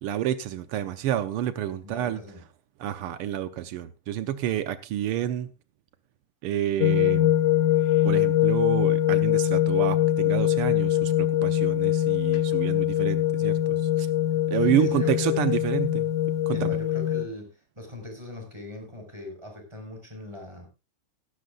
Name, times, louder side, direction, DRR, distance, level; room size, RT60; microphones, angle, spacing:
voice 1, 0.0-2.2 2.8-5.5 6.4-7.3 8.0-14.1 14.5-16.1 16.5-16.7, right 11 dB, 85° right, 1.2 m, -29 dB
voice 2, 1.8-2.4 14.5-15.3 16.5-20.7, left 1 dB, 10° right, 5.0 m, -41 dB
sound 1, 6.8-17.2, left 12 dB, 85° left, 2.5 m, -23 dB
17.0 x 13.0 x 2.4 m
omnidirectional pair, 3.4 m